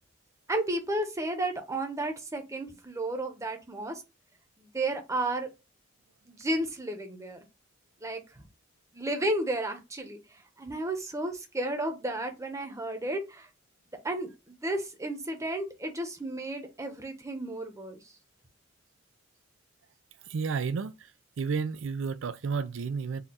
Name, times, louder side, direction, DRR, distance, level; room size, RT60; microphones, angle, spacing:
voice 1, 0.5-4.0 4.6-5.5 6.3-7.4 8.0-8.2 8.9-10.2 10.6-13.5 14.0-18.0, right 1 dB, 15° right, 0.8 m, -32 dB
voice 2, 20.3-21.0 21.4-23.2, right 5 dB, 80° right, 0.4 m, -31 dB
4.3 x 2.3 x 3.8 m
head